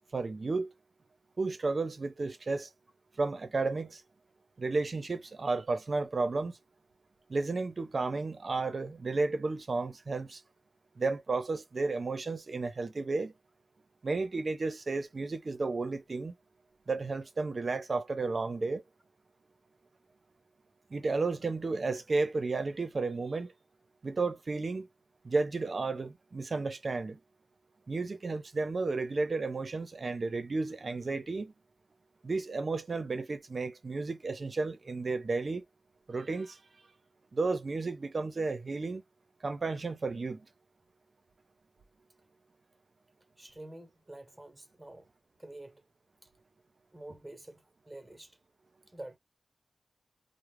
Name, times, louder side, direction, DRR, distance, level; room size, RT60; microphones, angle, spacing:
voice 1, 0.1-0.7 1.4-2.7 3.2-4.0 4.6-6.6 7.3-10.4 11.0-13.3 14.0-16.3 16.9-18.8 20.9-23.5 24.0-24.9 25.2-27.2 27.9-31.5 32.2-35.6 36.1-36.6 37.3-39.0 39.4-40.5, right 3 dB, 50° right, 0.6 m, -32 dB
voice 2, 43.4-45.1 45.4-45.8 46.2-46.3 46.9-48.4 48.9-49.2, right 1 dB, 15° right, 0.9 m, -48 dB
2.4 x 2.1 x 3.1 m
cardioid pair, 65°, 0 cm